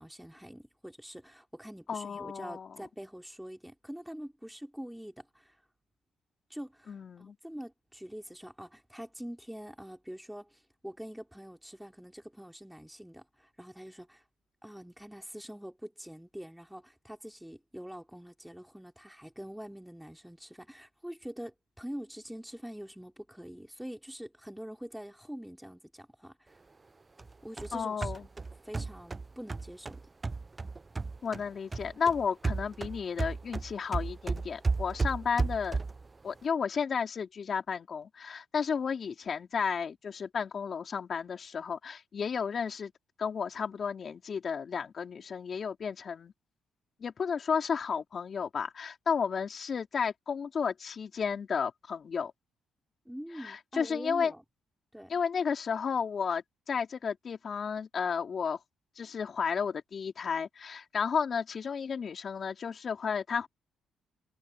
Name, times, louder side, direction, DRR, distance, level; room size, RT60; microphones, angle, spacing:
voice 1, 0.0-5.6 6.5-14.2 14.6-26.6 27.4-28.1 28.6-30.0 53.1-54.4 54.9-55.1, equal, 5° right, 4.1 m, -45 dB
voice 2, 1.9-2.8 6.9-7.4 27.7-28.3 31.2-35.8 36.2-42.9 43.2-46.3 47.0-52.3 53.4-54.3 55.1-58.6 59.0-63.5, left 6 dB, 45° left, 4.1 m, -33 dB
sound 1, 27.2-31.5 31.7-36.1, right 3 dB, 25° right, 0.6 m, -34 dB
cardioid pair, 90°, 0 cm